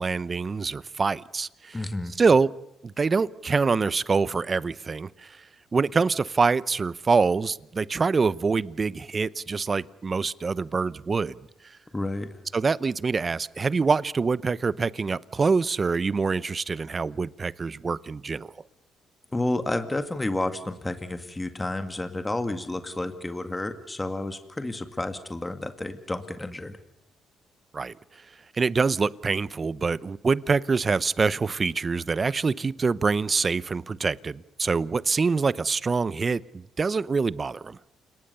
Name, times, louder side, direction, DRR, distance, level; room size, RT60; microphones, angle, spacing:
voice 1, 0.0-1.8 2.2-2.5 2.8-5.4 5.7-11.3 12.5-18.5 27.7-27.9 28.5-37.8, right 4 dB, 35° right, 19 dB, 0.8 m, -25 dB
voice 2, 1.7-2.1 11.9-12.3 19.3-26.8, left 2 dB, 15° left, 8 dB, 2.0 m, -30 dB
29.5 x 19.0 x 6.9 m, 0.83 s
cardioid pair, 90°, 0 cm